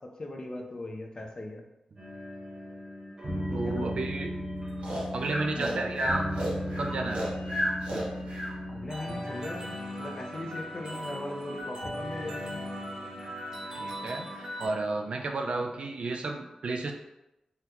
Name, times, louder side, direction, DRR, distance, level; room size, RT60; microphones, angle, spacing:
voice 1, 0.2-1.6 3.5-3.9 5.5-6.1 8.7-12.6, left 2 dB, 35° left, 2 dB, 0.4 m, -39 dB
sound 1, 2.0-14.7, equal, 35° right, 0.8 m, -37 dB
voice 2, 3.5-4.4 5.1-6.3 6.8-7.3 13.8-16.9, right 3 dB, 60° right, 3 dB, 0.3 m, -32 dB
Breathing, 4.8-8.5, equal, 85° right, 0.9 m, -32 dB
3.7 x 2.2 x 2.9 m, 0.92 s
wide cardioid pair, 160°, 2 cm